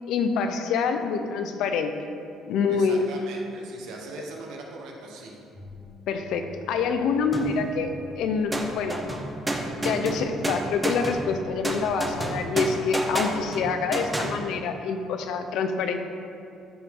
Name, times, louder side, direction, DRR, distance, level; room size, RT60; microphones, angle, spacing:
voice 1, 0.1-1.9 2.5-3.1 6.1-9.2 9.8-16.0, left 5 dB, 75° left, 7 dB, 0.7 m, -26 dB
voice 2, 2.7-5.4, right 3 dB, 80° right, 0 dB, 1.4 m, -40 dB
sound 1, 5.5-13.4, equal, 25° left, 1.9 m, -47 dB
sound 2, 7.3-8.1 8.5-14.4, right 1 dB, 15° right, 0.8 m, -30 dB
13.0 x 4.9 x 3.8 m, 2.5 s
cardioid pair, 115°, 0 cm